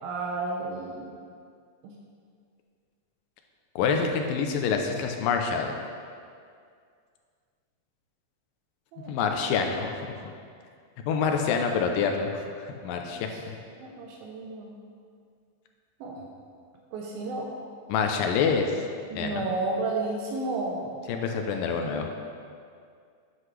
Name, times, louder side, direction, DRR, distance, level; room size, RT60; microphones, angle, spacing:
voice 1, 0.0-1.1 1.8-1.9 8.9-9.2 13.1-13.2 13.8-14.7 16.0-16.2 16.9-17.5 19.1-20.9, right 2 dB, 80° right, -1 dB, 2.5 m, -32 dB
voice 2, 3.8-5.8 9.1-10.1 11.1-13.6 17.9-18.8 19.1-19.5 21.1-22.3, left 5 dB, 80° left, 3 dB, 2.2 m, -27 dB
9.8 x 7.7 x 3.2 m, 2.2 s
omnidirectional pair, 4.3 m